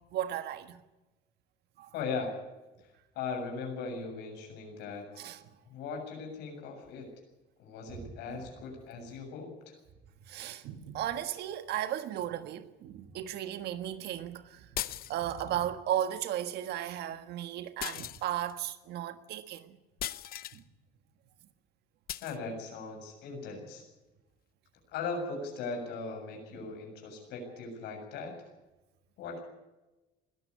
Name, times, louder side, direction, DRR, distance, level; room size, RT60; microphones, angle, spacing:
voice 1, 0.1-0.8 1.8-1.9 5.2-5.4 7.9-8.0 10.3-19.7 20.5-20.6, right 11 dB, 75° right, 1.5 m, -35 dB
voice 2, 1.9-2.3 2.8-2.9 3.2-5.1 5.7-7.1 7.6-9.8 22.2-23.8 24.9-28.3 29.2-29.4, left 4 dB, 90° left, 7.2 m, -39 dB
sound 1, 14.8-15.5 17.8-18.6 20.0-20.6 22.1-22.4, left 12 dB, 60° left, 0.8 m, -38 dB
21.0 x 14.5 x 9.7 m
cardioid pair, 110°, 17 cm